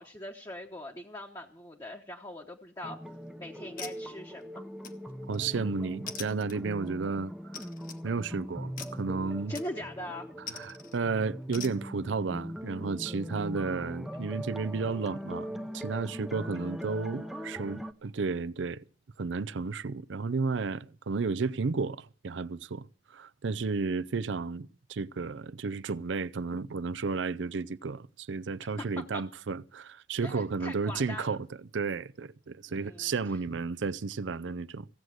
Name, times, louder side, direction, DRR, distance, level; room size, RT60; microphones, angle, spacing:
voice 1, 0.0-3.0 3.4-4.6 9.5-10.3 29.1-29.2 30.2-31.3 32.7-33.1, left 1 dB, 20° left, 1.0 m, -41 dB
sound 1, 2.8-17.9, equal, ahead, 0.6 m, -41 dB
sound 2, 3.0-3.3 3.8-4.4 4.8-5.5 6.1-6.9 7.5-8.0 8.8-9.1 9.5-10.0 10.5-11.0 11.5-11.8, left 7 dB, 45° left, 1.2 m, -43 dB
voice 2, 5.3-7.6 8.0-9.5 10.5-18.8 19.2-31.5 31.7-34.9, right 4 dB, 85° right, 0.5 m, -33 dB
16.0 x 8.0 x 7.6 m
head